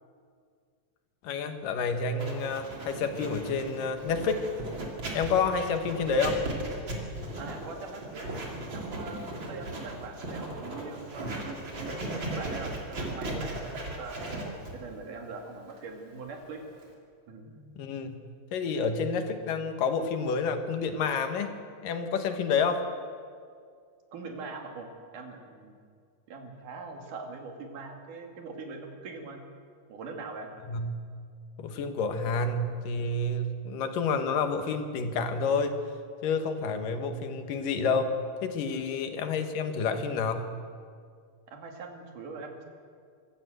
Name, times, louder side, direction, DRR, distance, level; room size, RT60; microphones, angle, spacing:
voice 1, 1.2-4.4 5.1-6.4 17.5-18.2 18.5-21.5 21.8-22.9 30.7-31.0 31.6-35.7 36.2-40.5, left 4 dB, 85° left, 7 dB, 3.1 m, -29 dB
Writing, 2.2-16.9, right 1 dB, 35° right, 3.3 m, -37 dB
voice 2, 7.4-8.3 8.7-16.6 17.3-17.5 24.1-25.8 26.3-29.4 29.9-30.5 38.7-38.8 41.5-42.6, right 4 dB, 75° right, 3 dB, 3.7 m, -42 dB
25.0 x 13.5 x 8.0 m, 2.2 s
omnidirectional pair, 3.7 m